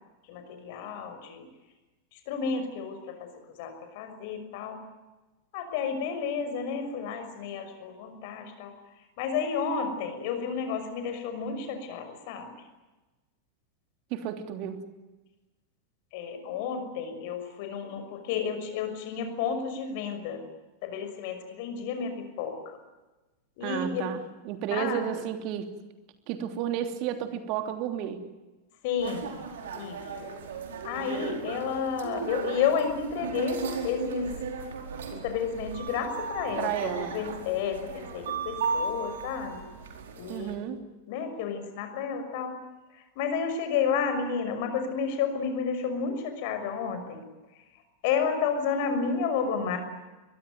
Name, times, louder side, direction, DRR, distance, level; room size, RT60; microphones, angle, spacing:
voice 1, 0.2-1.5 2.1-3.3 3.6-4.8 5.5-12.5 16.1-20.4 20.8-22.8 23.6-24.1 24.7-25.2 28.8-29.3 29.7-30.0 30.8-34.3 35.1-39.6 40.2-40.5 41.1-42.5 42.9-47.2 48.0-49.8, left 6 dB, 50° left, 7 dB, 6.1 m, -31 dB
voice 2, 14.1-14.8 23.6-25.7 26.3-28.2 36.6-37.2 40.3-40.8, right 9 dB, 40° right, 7 dB, 3.2 m, -32 dB
sound 1, 29.0-40.5, right 4 dB, 60° right, 4.6 m, -36 dB
23.5 x 22.5 x 9.4 m, 1.1 s
figure-of-eight pair, 90°, 0 cm